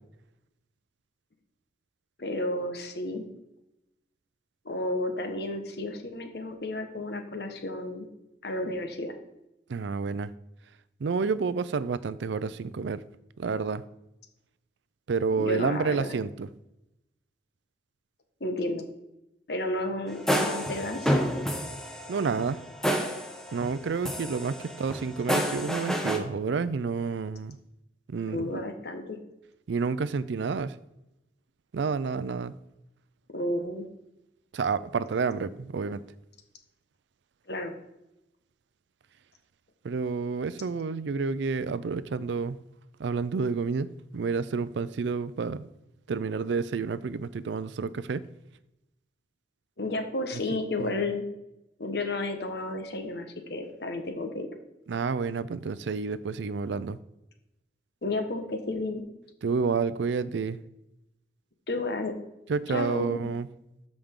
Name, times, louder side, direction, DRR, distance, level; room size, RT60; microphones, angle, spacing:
voice 1, 2.2-3.2 4.6-8.1 8.4-9.2 15.4-16.1 18.4-18.8 19.5-21.4 28.3-29.2 33.3-33.9 37.5-37.7 49.8-51.3 51.8-54.5 58.0-59.0 61.7-62.1 62.7-63.3, left 2 dB, 60° left, 1.2 m, -32 dB
voice 2, 9.7-10.3 11.0-13.0 13.4-13.8 15.1-16.5 22.1-22.6 23.5-27.6 28.1-28.6 29.7-30.7 31.7-32.5 34.5-36.0 39.8-42.6 43.0-45.7 46.1-48.2 50.5-50.9 54.9-57.0 59.4-60.6 62.5-63.5, right 5 dB, 80° right, 0.4 m, -29 dB
sound 1, 20.1-23.8 24.0-26.2, equal, 5° left, 0.8 m, -29 dB
13.0 x 5.2 x 3.7 m
head